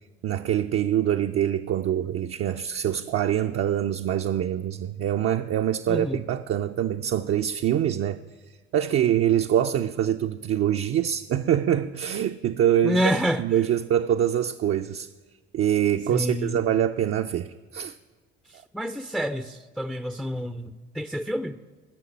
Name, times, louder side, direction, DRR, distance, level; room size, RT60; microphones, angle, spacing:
voice 1, 0.2-8.2 8.7-13.1 13.4-15.1 15.5-17.9, right 10 dB, 50° right, 0.5 m, -24 dB
voice 2, 5.9-6.2 12.8-13.4 16.1-16.6 18.7-21.6, equal, ahead, 0.5 m, -28 dB
10.0 x 6.5 x 8.5 m
hypercardioid pair, 65°, 29 cm